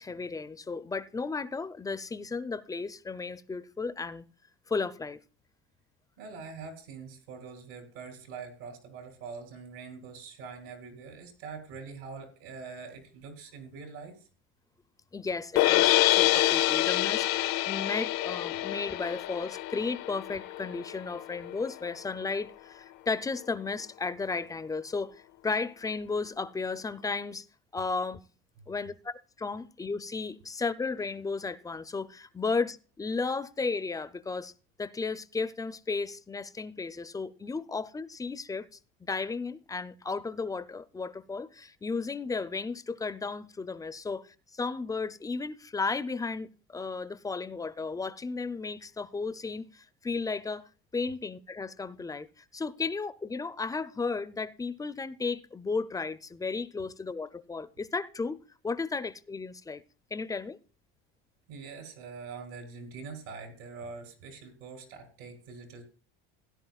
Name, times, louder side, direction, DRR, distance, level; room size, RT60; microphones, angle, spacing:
voice 1, 0.0-4.3 4.7-5.2 15.1-27.5 27.7-28.2 28.7-34.5 34.8-38.7 39.0-50.6 50.9-58.4 58.6-59.8 60.1-60.6, left 4 dB, 10° left, 0.4 m, -34 dB
voice 2, 6.2-14.3 61.5-65.8, right 5 dB, 85° right, 3.5 m, -44 dB
sound 1, 15.6-21.7, left 16 dB, 65° left, 0.6 m, -27 dB
16.5 x 10.5 x 2.4 m
supercardioid pair, 115°, 31 cm